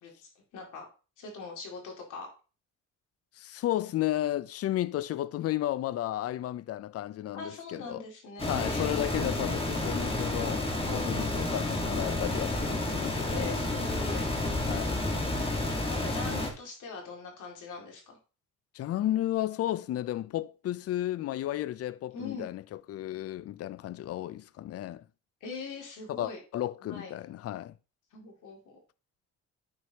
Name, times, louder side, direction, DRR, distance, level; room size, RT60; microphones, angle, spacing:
voice 1, 0.0-0.9 1.2-2.3 7.3-9.3 10.8-11.6 13.3-14.2 15.9-18.2 22.1-22.5 25.4-26.4 26.8-27.1 28.1-28.7, left 4 dB, 80° left, 2.3 m, -42 dB
voice 2, 3.4-8.0 8.5-10.7 10.9-13.5 14.7-15.0 18.7-25.0 26.1-27.7, left 13 dB, 55° left, 0.4 m, -33 dB
sound 1, 8.4-16.5, left 2 dB, 20° left, 1.6 m, -30 dB
9.4 x 4.7 x 2.8 m
cardioid pair, 90°, 30 cm